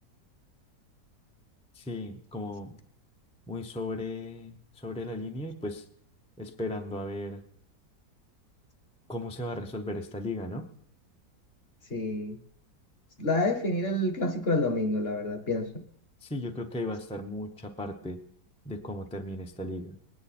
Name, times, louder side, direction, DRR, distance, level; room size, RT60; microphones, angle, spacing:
voice 1, 1.7-2.8 3.5-5.8 6.4-7.4 9.1-10.6 16.2-18.2 18.6-20.0, left 1 dB, 10° left, 4 dB, 0.3 m, -36 dB
voice 2, 11.9-12.4 13.2-15.7, left 2 dB, 40° left, 7 dB, 1.0 m, -28 dB
20.5 x 9.7 x 4.3 m, 0.66 s
omnidirectional pair, 1.9 m